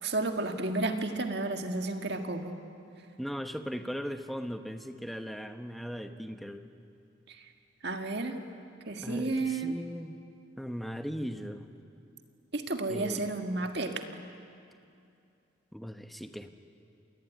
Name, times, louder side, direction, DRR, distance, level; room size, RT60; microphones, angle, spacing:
voice 1, 0.0-2.6 7.3-7.5 7.8-8.4 8.9-9.8 12.5-14.0, right 2 dB, 55° right, 5 dB, 1.9 m, -32 dB
voice 2, 3.2-6.7 9.0-10.2 10.6-11.6 12.9-13.2 15.7-16.5, equal, ahead, 7 dB, 1.0 m, -38 dB
27.0 x 19.5 x 9.4 m, 2.5 s
head